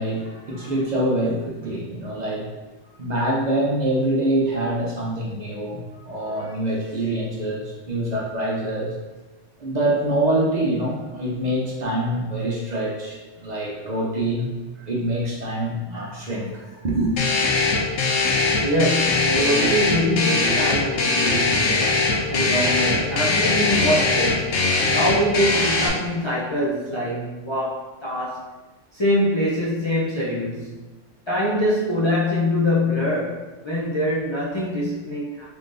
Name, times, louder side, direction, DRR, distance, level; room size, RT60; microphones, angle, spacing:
voice 1, 0.0-2.5 3.0-8.9 9.6-14.5 14.8-17.1, right 1 dB, 45° right, -3 dB, 0.6 m, -25 dB
sound 1, 17.2-25.9, left 3 dB, 85° left, 1.0 m, -21 dB
voice 2, 18.6-24.6 24.9-28.4 28.9-30.8 31.3-35.4, left 1 dB, 45° left, -7 dB, 0.3 m, -24 dB
3.6 x 3.2 x 2.5 m, 1.2 s
omnidirectional pair, 1.3 m